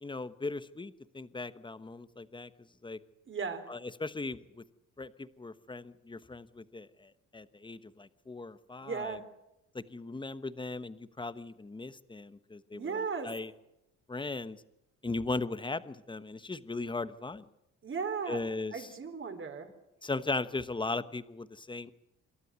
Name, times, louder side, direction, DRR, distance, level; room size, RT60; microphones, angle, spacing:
voice 1, 0.0-2.5 2.8-3.0 3.7-4.6 5.0-9.2 9.7-13.5 14.1-14.6 15.0-17.4 18.3-18.9 20.0-21.9, left 3 dB, 15° left, 13 dB, 1.2 m, -38 dB
voice 2, 3.3-3.7 8.8-9.2 12.7-13.3 17.8-18.4 18.7-19.7, right 5 dB, 40° right, 6 dB, 4.0 m, -36 dB
27.0 x 12.5 x 9.6 m, 0.88 s
cardioid pair, 90°, 30 cm